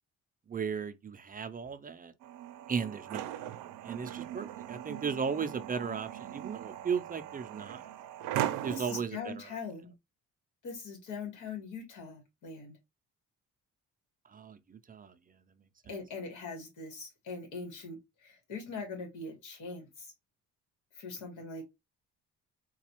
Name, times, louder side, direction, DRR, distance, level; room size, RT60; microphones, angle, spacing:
voice 1, 0.5-2.1 2.7-3.5 3.8-7.8 8.6-9.3 14.3-15.1, right 6 dB, 30° right, 0.4 m, -36 dB
sound 1, 2.2-9.0, right 12 dB, 85° right, 0.5 m, -39 dB
voice 2, 8.7-9.9 10.6-12.7 15.9-20.1 21.0-21.6, left 4 dB, 85° left, 1.6 m, -42 dB
4.0 x 2.3 x 2.9 m
cardioid pair, 90°, 30 cm